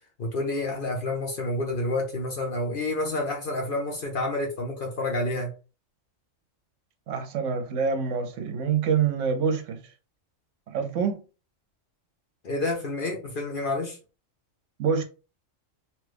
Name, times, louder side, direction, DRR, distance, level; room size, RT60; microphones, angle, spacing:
voice 1, 0.2-5.5 12.4-14.0, left 2 dB, 50° left, 0.7 m, -29 dB
voice 2, 7.1-9.8 10.7-11.2 14.8-15.0, right 6 dB, 70° right, 0.9 m, -26 dB
3.0 x 2.3 x 3.3 m
omnidirectional pair, 1.4 m